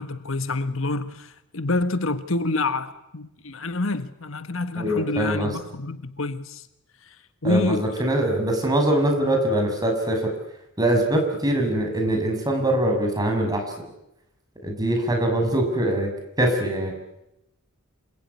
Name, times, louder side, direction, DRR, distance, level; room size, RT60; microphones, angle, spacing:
voice 1, 0.0-6.7 7.0-7.1 7.4-8.0, left 2 dB, 65° left, 1.5 m, -27 dB
voice 2, 4.8-5.5 7.4-10.3 10.8-13.6 14.6-16.1 16.4-16.9, right 1 dB, 20° right, 6.8 m, -23 dB
28.0 x 20.5 x 9.7 m
head